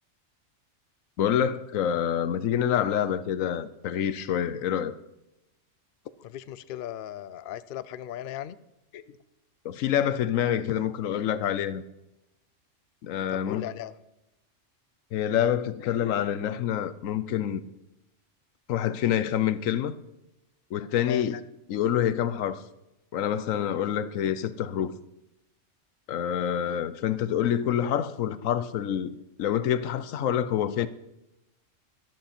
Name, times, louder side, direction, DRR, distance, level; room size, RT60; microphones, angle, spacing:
voice 1, 1.2-5.0 8.9-9.0 9.6-11.8 13.0-13.6 15.1-17.6 18.7-19.9 20.7-21.4 21.7-22.6 23.1-24.9 26.1-30.9, left 10 dB, 85° left, 1.1 m, -27 dB
voice 2, 6.2-8.6 13.3-13.9 21.0-21.2, left 11 dB, 60° left, 0.6 m, -37 dB
13.5 x 12.5 x 4.3 m
omnidirectional pair, 1.3 m